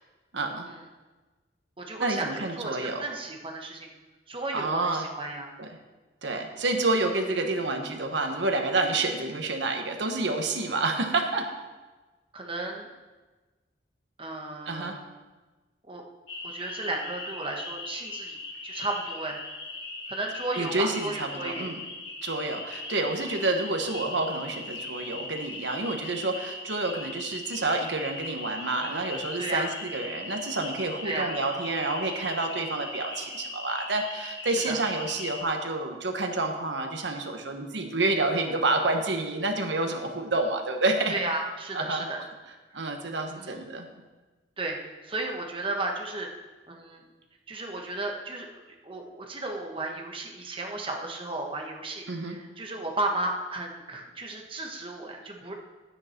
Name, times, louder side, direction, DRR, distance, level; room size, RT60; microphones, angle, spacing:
voice 1, 0.3-0.7 2.0-3.1 4.5-5.1 5.6-5.7 6.2-11.5 14.7-15.0 20.5-21.8 22.2-41.2 41.7-42.1 42.7-43.9 52.1-52.4, right 2 dB, 75° right, 4 dB, 1.3 m, -29 dB
voice 2, 1.8-3.9 4.3-5.5 12.3-12.9 14.2-15.1 15.9-16.0 16.4-19.4 20.1-21.7 25.8-25.9 29.4-29.7 31.0-31.3 34.7-34.8 41.1-42.2 43.4-43.6 44.6-46.3 46.7-47.0 47.5-48.5 48.8-55.5, right 2 dB, 30° right, 1 dB, 1.3 m, -34 dB
sound 1, 16.3-35.4, left 2 dB, 85° left, 2.0 m, -39 dB
11.0 x 9.6 x 4.5 m, 1.2 s
head